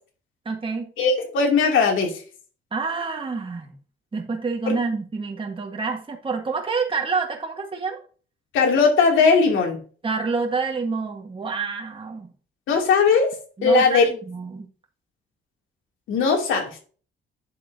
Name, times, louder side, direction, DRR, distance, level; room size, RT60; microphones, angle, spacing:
voice 1, 0.4-0.9 2.7-3.7 4.1-8.0 10.0-12.3 13.6-14.7, right 4 dB, 25° right, 2 dB, 1.7 m, -28 dB
voice 2, 1.0-2.2 4.7-4.8 8.5-9.8 12.7-13.4 13.6-14.1 16.1-16.8, left 4 dB, 85° left, 2 dB, 2.9 m, -19 dB
8.9 x 7.5 x 2.8 m, 0.40 s
cardioid pair, 90°, 20 cm